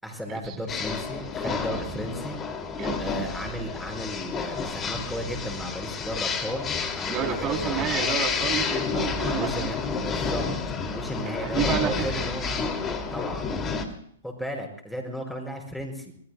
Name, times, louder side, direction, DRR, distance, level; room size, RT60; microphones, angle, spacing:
voice 1, 0.0-2.4 3.0-8.1 9.3-10.5 10.9-12.6 13.1-13.5 14.2-16.1, equal, 5° left, 2 dB, 5.6 m, -35 dB
sound 1, 0.7-13.8, left 5 dB, 25° left, 2.5 m, -30 dB
voice 2, 7.1-9.7 11.2-12.2, right 8 dB, 30° right, 3 dB, 3.4 m, -30 dB
28.0 x 20.0 x 2.3 m, 0.66 s
hypercardioid pair, 115°, 0 cm